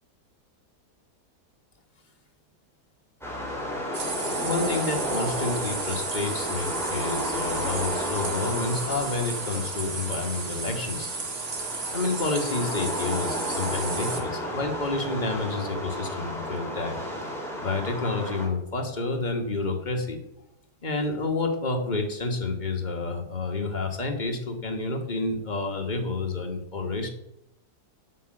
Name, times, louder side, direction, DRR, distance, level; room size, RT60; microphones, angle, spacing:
sound 1, 3.2-18.5, equal, ahead, 2.4 m, -33 dB
sound 2, 3.9-14.2, right 4 dB, 40° right, 1.3 m, -34 dB
voice 1, 4.4-11.1 11.9-17.0 17.6-20.2 20.8-27.1, left 3 dB, 30° left, 3 dB, 1.3 m, -29 dB
8.4 x 5.3 x 7.7 m, 0.84 s
omnidirectional pair, 1.8 m